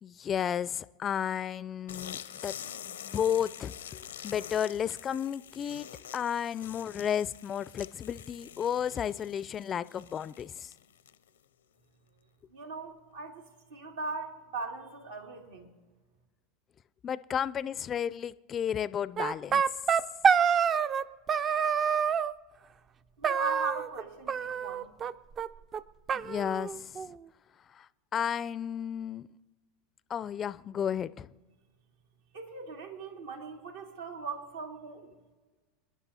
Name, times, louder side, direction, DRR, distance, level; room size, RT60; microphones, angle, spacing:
voice 1, 0.0-2.6 2.8-3.7 4.2-10.7 17.0-19.6 26.1-27.0 27.7-29.3 30.1-31.3, left 9 dB, 35° left, 0.4 m, -33 dB
sound 1, 1.9-11.4, left 9 dB, 85° left, 0.6 m, -46 dB
voice 2, 12.5-13.4 13.7-15.7 23.2-24.9 32.3-35.1, right 3 dB, 80° right, 2.4 m, -39 dB
sound 2, 19.2-21.0 21.3-22.3 23.2-24.0 24.3-25.1 25.4-25.5 25.7-25.8 26.1-27.1, right 7 dB, 35° right, 0.4 m, -27 dB
28.0 x 10.5 x 2.8 m
hypercardioid pair, 90°, 0 cm